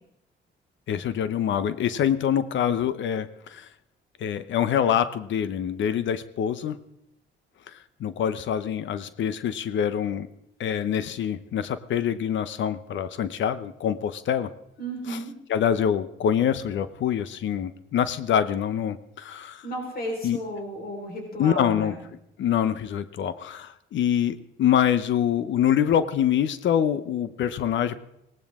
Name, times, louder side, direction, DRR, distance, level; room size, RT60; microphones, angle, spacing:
voice 1, 0.9-3.7 4.2-6.8 8.0-10.3 10.6-14.5 15.1-15.2 15.5-19.7 20.2-20.4 21.4-21.9 22.4-28.0, left 9 dB, 70° left, 14 dB, 0.9 m, -25 dB
voice 2, 14.8-15.3 19.6-22.0, equal, 50° left, 1 dB, 4.4 m, -33 dB
18.0 x 18.0 x 3.7 m, 0.79 s
cardioid pair, 90°, 20 cm